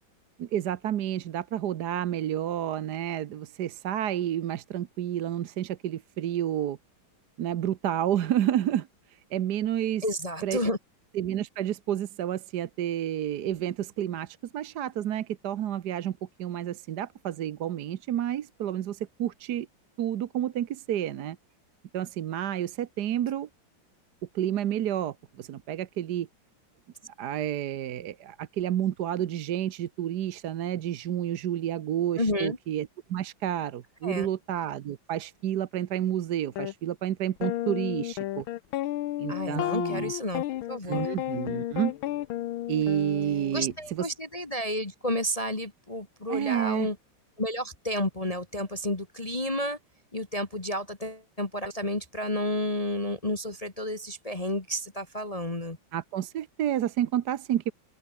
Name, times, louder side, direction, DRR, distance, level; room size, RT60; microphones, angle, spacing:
voice 1, 0.4-6.8 7.4-10.0 10.4-10.6 11.1-19.7 20.0-21.4 21.9-23.5 24.3-26.3 27.2-38.4 39.2-40.1 40.8-41.9 42.7-44.1 46.3-46.9 55.9-57.7, right 11 dB, 60° right, 1.3 m, -30 dB
voice 2, 10.0-10.8 32.2-32.6 34.0-34.3 39.3-41.1 43.5-47.0 47.4-49.8 50.1-55.8, left 1 dB, 20° left, 1.8 m, -31 dB
sound 1, 36.6-36.7 37.4-43.7, left 14 dB, 85° left, 1.6 m, -32 dB
open air
omnidirectional pair, 2.2 m